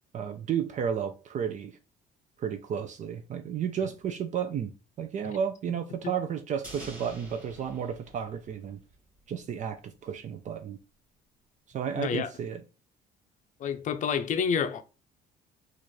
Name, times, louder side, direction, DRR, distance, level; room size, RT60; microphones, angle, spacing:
voice 1, 0.1-1.7 2.4-8.8 9.3-10.8 11.7-12.6, right 8 dB, 45° right, 0.5 m, -32 dB
sound 1, 6.6-9.0 9.3-9.4, right 1 dB, 10° right, 2.0 m, -47 dB
voice 2, 12.0-12.3 13.6-14.8, left 7 dB, 50° left, 0.5 m, -28 dB
4.2 x 2.5 x 3.1 m
cardioid pair, 110°, 17 cm